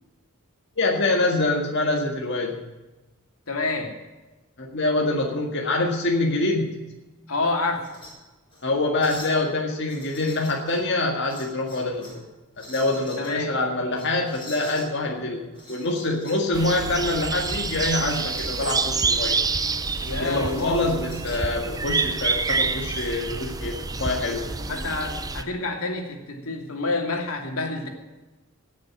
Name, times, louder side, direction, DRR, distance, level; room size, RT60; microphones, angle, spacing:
voice 1, 0.8-2.6 4.6-6.8 8.6-12.3 12.6-19.4 20.2-24.5, left 2 dB, 55° left, 0 dB, 1.9 m, -25 dB
voice 2, 3.5-3.9 7.3-7.9 13.2-13.5 20.0-20.8 24.6-27.9, left 3 dB, 90° left, 2 dB, 2.8 m, -28 dB
sound 1, 7.7-8.1 8.5-8.6 9.0-9.4 9.8-10.8 11.2-12.2 12.5-13.3 13.9-14.9 15.5-16.4 16.7-21.5 22.4-23.1, left 1 dB, 25° left, 6.8 m, -44 dB
sound 2, 16.5-25.4, right 4 dB, 15° right, 0.6 m, -27 dB
18.0 x 6.6 x 8.8 m, 1.1 s
head